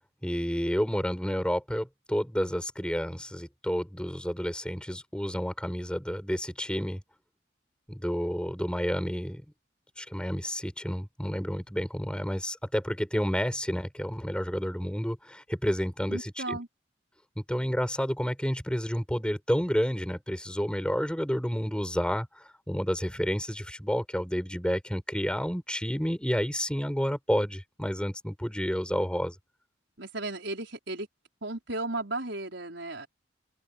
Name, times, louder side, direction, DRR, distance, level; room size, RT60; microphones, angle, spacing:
voice 1, 0.2-7.0 7.9-9.4 10.0-16.6 17.4-22.3 22.7-29.3, equal, 5° left, 6.8 m, -30 dB
voice 2, 16.1-16.7 30.0-31.1 31.4-33.1, right 2 dB, 70° right, 5.2 m, -35 dB
open air
head